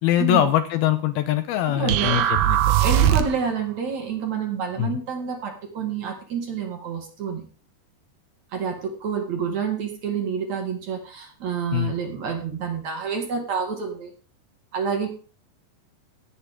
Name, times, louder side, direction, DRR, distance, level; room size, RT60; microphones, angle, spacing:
voice 1, 0.0-2.7 3.0-3.2 4.8-5.0 11.7-11.9, left 12 dB, 80° left, 10 dB, 2.4 m, -23 dB
voice 2, 1.8-2.2 2.8-7.4 8.5-14.1 14.7-15.1, right 6 dB, 50° right, 2 dB, 2.8 m, -28 dB
sound 1, 1.9-3.5, right 13 dB, 75° right, 2.6 m, -20 dB
17.5 x 8.6 x 3.6 m, 0.38 s
omnidirectional pair, 4.9 m